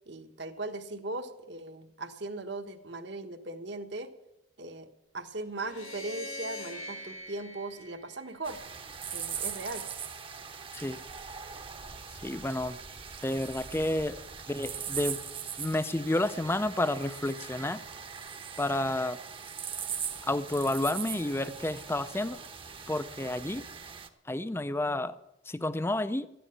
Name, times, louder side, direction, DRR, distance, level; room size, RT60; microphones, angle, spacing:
voice 1, 0.1-4.1 4.6-4.9 5.1-8.6 9.1-9.8, right 2 dB, 60° right, 7 dB, 1.4 m, -38 dB
sound 1, 5.6-8.9, left 1 dB, 90° left, 1.8 m, -43 dB
sound 2, 8.4-24.1, right 7 dB, 25° right, 0.9 m, -41 dB
voice 2, 12.2-12.8 13.2-14.1 14.5-15.2 15.6-17.8 18.6-19.2 20.2-22.4 22.9-23.6 24.3-25.2 25.5-26.3, left 1 dB, 10° left, 14 dB, 0.5 m, -30 dB
13.0 x 10.0 x 8.9 m, 0.88 s
head